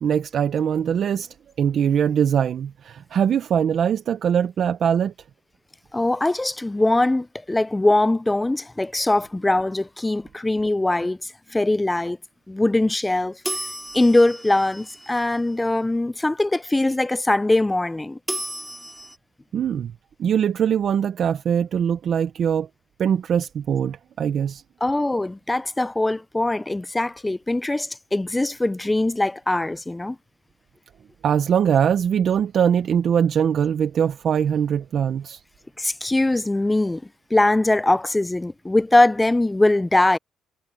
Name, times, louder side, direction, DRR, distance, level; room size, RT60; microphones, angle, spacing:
voice 1, 0.0-5.1 19.5-19.9 20.2-22.7 23.0-24.6 31.2-35.4, right 8 dB, 60° right, 0.8 m, -22 dB
voice 2, 5.9-12.2 12.5-13.4 13.9-18.2 24.8-30.2 35.8-37.0 37.3-40.2, left 2 dB, 15° left, 0.5 m, -21 dB
sound 1, 13.4-15.7 18.3-19.2, right 1 dB, 5° right, 2.3 m, -33 dB
cardioid pair, 90°, 0 cm